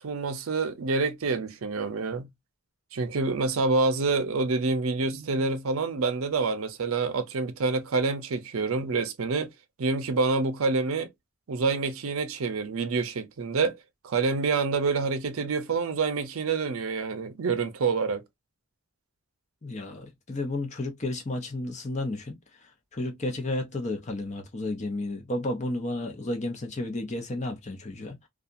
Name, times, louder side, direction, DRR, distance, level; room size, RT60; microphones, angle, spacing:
voice 1, 0.0-2.3 2.9-9.5 9.8-11.1 11.5-13.8 14.0-18.2, right 4 dB, 75° right, 0.5 m, -27 dB
voice 2, 19.6-22.4 22.9-28.2, left 2 dB, 35° left, 0.7 m, -32 dB
2.7 x 2.4 x 2.3 m
head